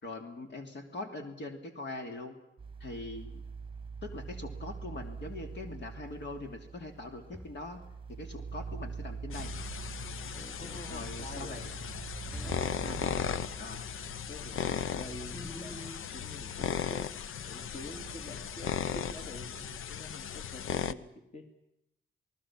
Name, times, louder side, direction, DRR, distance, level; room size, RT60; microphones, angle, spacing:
voice 1, 0.0-2.4 2.8-3.4 4.0-7.8 8.1-9.5 10.9-11.7 12.6-13.1 13.6-13.9 14.6-14.8, left 2 dB, 60° left, 4 dB, 3.0 m, -42 dB
sound 1, 2.6-19.8, right 5 dB, 25° right, 1.1 m, -45 dB
sound 2, 7.3-7.8 10.3-10.8 12.3-12.9 15.3-16.0, equal, ahead, 4.2 m, -45 dB
sound 3, 9.3-20.9, left 8 dB, 80° left, 0.8 m, -37 dB
voice 2, 10.5-11.7 12.6-13.5 14.3-17.1 17.4-21.5, left 2 dB, 35° left, 4 dB, 2.6 m, -47 dB
28.0 x 19.5 x 7.4 m, 0.83 s
cardioid pair, 100°, 21 cm